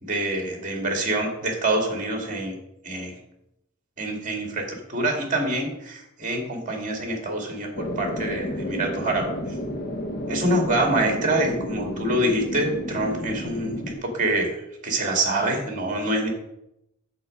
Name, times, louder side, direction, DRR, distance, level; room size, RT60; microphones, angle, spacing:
voice 1, 0.0-2.6 2.8-3.1 4.0-9.3 10.3-14.6 14.8-16.3, right 1 dB, 35° right, 2 dB, 2.1 m, -26 dB
sound 1, 7.7-13.9, equal, 50° left, 1.1 m, -31 dB
8.4 x 7.2 x 5.3 m, 0.82 s
head